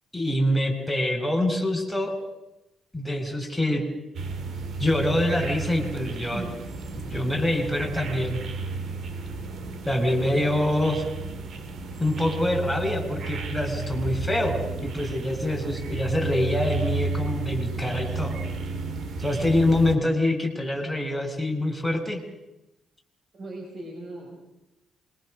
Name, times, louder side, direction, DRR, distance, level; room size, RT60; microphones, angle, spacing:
voice 1, 0.1-2.2 2.9-3.8 4.8-6.4 7.1-8.4 9.9-11.0 12.0-18.4 19.2-22.2, left 1 dB, 5° left, 5 dB, 5.9 m, -25 dB
sound 1, 4.1-20.0, right 3 dB, 65° right, 2.6 m, -33 dB
voice 2, 6.0-6.6 23.3-24.4, right 2 dB, 50° right, 1 dB, 6.5 m, -38 dB
26.5 x 22.5 x 6.5 m, 0.91 s
cardioid pair, 90°, 0 cm